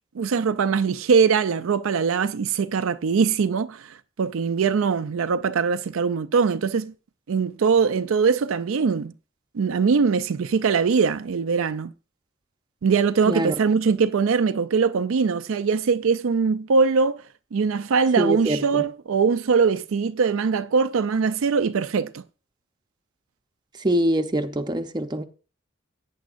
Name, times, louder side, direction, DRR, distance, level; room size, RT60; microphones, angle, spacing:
voice 1, 0.2-6.9 7.3-9.1 9.5-11.9 12.8-17.2 17.5-22.2, right 5 dB, 75° right, 0.4 m, -22 dB
voice 2, 18.2-18.8 23.8-25.2, right 1 dB, 20° right, 0.7 m, -24 dB
16.5 x 9.3 x 2.5 m
head